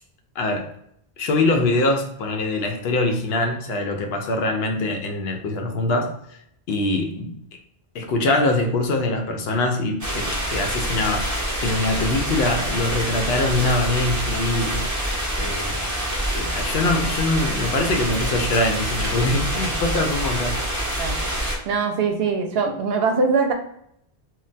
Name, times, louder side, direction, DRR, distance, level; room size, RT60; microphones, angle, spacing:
voice 1, 0.4-0.7 1.2-6.4 6.7-7.4 7.9-11.3 11.6-14.9 15.4-15.8 16.3-20.6, left 2 dB, 75° left, 3 dB, 0.8 m, -23 dB
sound 1, 10.0-21.6, right 1 dB, 20° right, 0.6 m, -26 dB
voice 2, 21.7-23.5, right 4 dB, 75° right, 4 dB, 0.8 m, -22 dB
2.2 x 2.2 x 3.8 m, 0.72 s
omnidirectional pair, 1.0 m